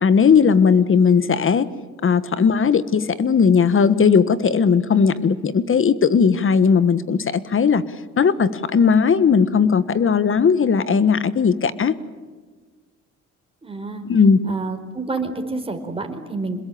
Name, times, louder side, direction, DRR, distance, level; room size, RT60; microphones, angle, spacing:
voice 1, 0.0-1.7 2.0-7.8 8.2-11.9 14.1-14.4, left 6 dB, 45° left, 15 dB, 1.5 m, -17 dB
voice 2, 13.6-14.0 14.4-16.6, right 3 dB, 20° right, 5 dB, 4.5 m, -28 dB
27.0 x 21.5 x 8.7 m, 1.4 s
cardioid pair, 90°, 30 cm